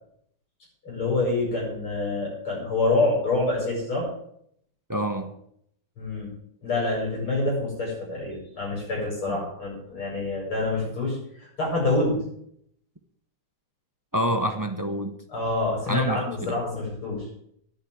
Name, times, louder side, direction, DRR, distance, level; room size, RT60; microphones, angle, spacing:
voice 1, 0.8-4.1 6.0-6.3 6.6-12.2 15.3-17.2, left 2 dB, 90° left, -4 dB, 8.5 m, -26 dB
voice 2, 4.9-5.3 9.3-9.5 14.1-15.2 15.9-16.6, right 1 dB, 20° right, 6 dB, 0.5 m, -28 dB
11.0 x 8.3 x 9.4 m, 0.70 s
omnidirectional pair, 2.3 m